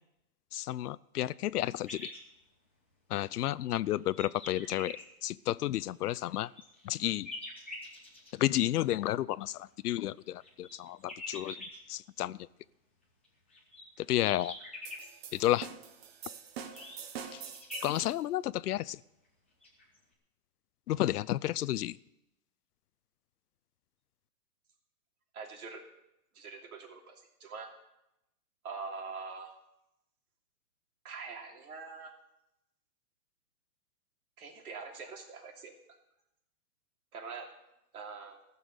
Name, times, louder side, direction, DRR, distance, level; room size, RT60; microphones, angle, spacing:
voice 1, 0.5-2.1 3.1-5.0 5.2-6.5 6.8-7.3 8.3-11.6 11.9-12.5 14.0-14.5 15.3-15.7 17.8-19.0 20.9-22.0, left 14 dB, 75° left, 19 dB, 0.6 m, -31 dB
sound 1, 1.8-2.2 2.9-3.0 3.6-5.0 6.1-8.3 10.0-11.8 13.2-15.1 16.6-18.0 19.2-19.3 19.6-20.0, left 2 dB, 10° left, 0.4 m, -45 dB
sound 2, 14.8-18.1, right 7 dB, 40° right, 1.2 m, -45 dB
voice 2, 25.3-25.9 26.3-27.8 28.6-29.5 31.0-32.2 34.4-35.7 37.1-37.5 37.9-38.4, right 4 dB, 65° right, 2 dB, 3.0 m, -44 dB
15.0 x 7.1 x 8.0 m, 0.87 s
hypercardioid pair, 160°, 47 cm